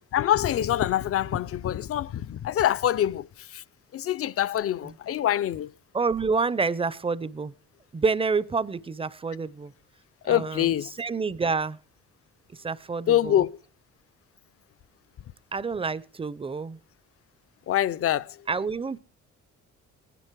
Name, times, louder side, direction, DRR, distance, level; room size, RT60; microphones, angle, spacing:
voice 1, 0.1-3.6 3.9-5.7 10.2-10.9 13.1-13.6 17.7-18.5, left 11 dB, 50° left, 0.5 m, -25 dB
voice 2, 5.9-7.5 7.9-9.7 10.3-11.8 12.6-13.4 15.5-16.8 18.5-19.0, right 4 dB, 20° right, 0.5 m, -28 dB
19.0 x 9.9 x 4.6 m
cardioid pair, 90°, 30 cm